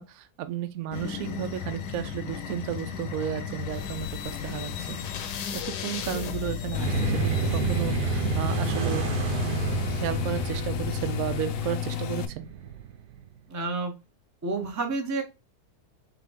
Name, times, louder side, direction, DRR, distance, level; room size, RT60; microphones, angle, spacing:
voice 1, 0.0-5.3 5.5-9.1 9.4-12.5, right 11 dB, 70° right, 1.0 m, -33 dB
sound 1, 0.9-11.5, left 8 dB, 85° left, 1.3 m, -35 dB
sound 2, 6.7-12.3, left 12 dB, 65° left, 0.8 m, -32 dB
sound 3, 6.7-13.4, right 11 dB, 85° right, 1.4 m, -31 dB
voice 2, 13.5-13.9 14.4-15.2, right 3 dB, 15° right, 0.6 m, -29 dB
3.7 x 3.6 x 3.5 m
omnidirectional pair, 1.8 m